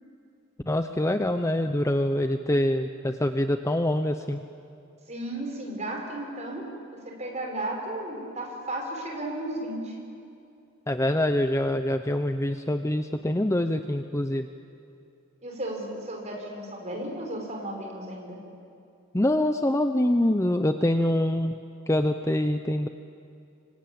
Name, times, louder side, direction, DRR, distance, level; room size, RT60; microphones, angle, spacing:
voice 1, 0.7-4.4 10.9-14.5 19.1-21.6 21.9-22.9, left 1 dB, 15° left, 7 dB, 0.7 m, -25 dB
voice 2, 5.1-10.0 15.4-18.4, right 1 dB, 30° right, 0 dB, 5.6 m, -34 dB
25.5 x 25.0 x 8.8 m, 2.6 s
head